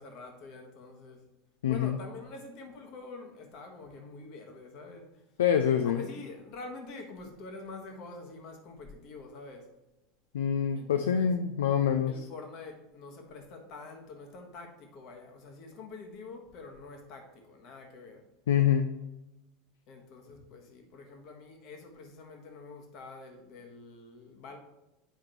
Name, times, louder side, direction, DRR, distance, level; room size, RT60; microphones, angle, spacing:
voice 1, 0.0-1.3 1.7-5.3 5.8-9.7 10.7-11.3 12.1-18.3 19.9-24.6, left 3 dB, 45° left, 1.3 m, -46 dB
voice 2, 1.6-2.0 5.4-6.0 10.3-12.1 18.5-18.9, left 8 dB, 65° left, 0.3 m, -25 dB
8.1 x 5.0 x 2.9 m
figure-of-eight pair, 80°, 0 cm